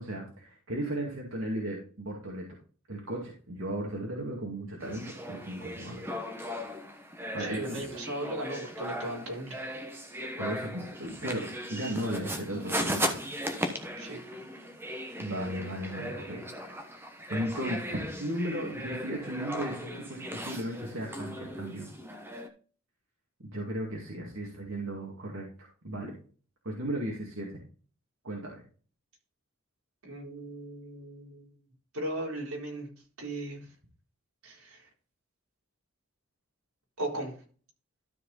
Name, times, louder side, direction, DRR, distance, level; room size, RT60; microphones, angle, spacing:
voice 1, 0.0-2.4 2.9-6.0 7.3-7.9 10.4-13.2 14.9-16.8 17.3-21.9 23.5-25.5 25.8-26.1 26.6-27.6 28.2-28.6, right 1 dB, 65° right, -1 dB, 2.2 m, -36 dB
sound 1, 4.8-22.5, equal, 10° right, 1.1 m, -37 dB
voice 2, 7.4-9.6 14.0-14.2 30.0-31.5 31.9-32.9 33.2-33.7 34.4-34.9 37.0-37.4, right 1 dB, 90° right, -1 dB, 3.9 m, -37 dB
12.5 x 4.8 x 4.1 m, 0.39 s
head